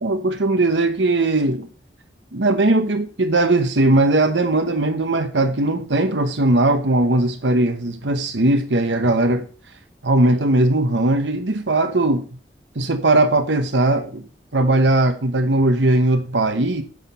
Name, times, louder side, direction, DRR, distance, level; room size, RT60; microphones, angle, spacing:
voice 1, 0.0-1.7 2.3-9.5 10.0-12.4 12.7-14.2 14.5-16.8, right 2 dB, 85° right, 1.1 m, -19 dB
9.7 x 6.4 x 5.6 m
head